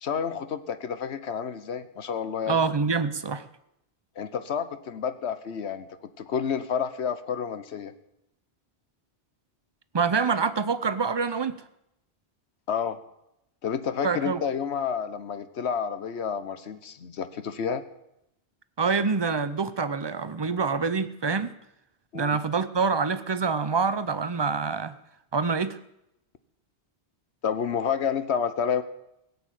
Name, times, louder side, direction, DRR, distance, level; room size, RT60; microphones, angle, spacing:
voice 1, 0.0-2.6 4.2-5.9 6.2-7.9 12.7-13.0 13.6-17.8 22.1-22.4 27.4-28.8, left 7 dB, 75° left, 12 dB, 1.2 m, -30 dB
voice 2, 2.5-3.4 9.9-11.6 14.0-14.4 18.8-21.5 22.1-25.0 25.3-25.8, right 5 dB, 30° right, 13 dB, 0.5 m, -26 dB
17.0 x 7.1 x 9.1 m, 0.84 s
omnidirectional pair, 1.1 m